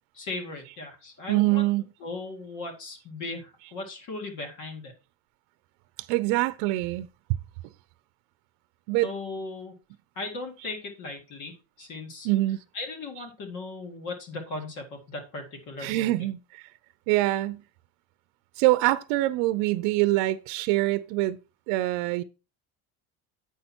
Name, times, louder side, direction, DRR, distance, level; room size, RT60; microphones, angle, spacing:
voice 1, 0.1-1.7 2.0-4.9 9.0-9.7 10.2-12.3 12.7-16.3, left 3 dB, 45° left, 2.2 m, -37 dB
voice 2, 1.3-1.9 6.1-7.1 8.9-9.1 12.2-12.6 15.8-16.6 17.1-17.6 18.6-21.4 21.7-22.2, right 18 dB, 85° right, 0.7 m, -24 dB
8.5 x 5.8 x 4.4 m
cardioid pair, 180°, 40 cm